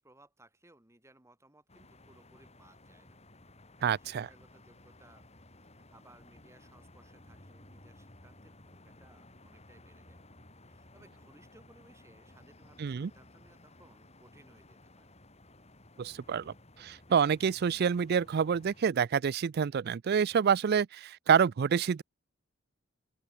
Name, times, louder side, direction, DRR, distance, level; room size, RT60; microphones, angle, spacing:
voice 1, 0.0-3.2 4.0-5.3 5.7-10.2 10.7-15.1, right 1 dB, 15° right, 2.3 m, -62 dB
sound 1, 1.7-18.8, left 1 dB, 30° left, 6.2 m, -57 dB
voice 2, 3.8-4.3 12.8-13.1 16.0-22.0, right 7 dB, 50° right, 0.4 m, -27 dB
open air
head